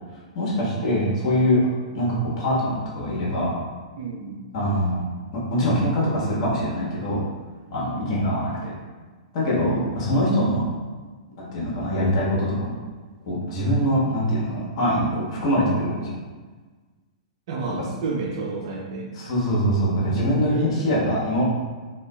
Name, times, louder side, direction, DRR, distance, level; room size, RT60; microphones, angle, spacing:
voice 1, 0.3-1.6 1.9-3.5 4.5-5.0 5.3-7.2 7.7-8.7 9.3-10.6 11.4-12.7 13.2-16.1 19.2-21.4, equal, 45° left, -6 dB, 1.0 m, -23 dB
voice 2, 4.0-4.4 7.9-8.2 9.7-10.1 17.5-19.6 20.5-21.0, right 4 dB, 50° right, -2 dB, 0.4 m, -32 dB
2.7 x 2.4 x 2.3 m, 1.4 s
figure-of-eight pair, 110°, 4 cm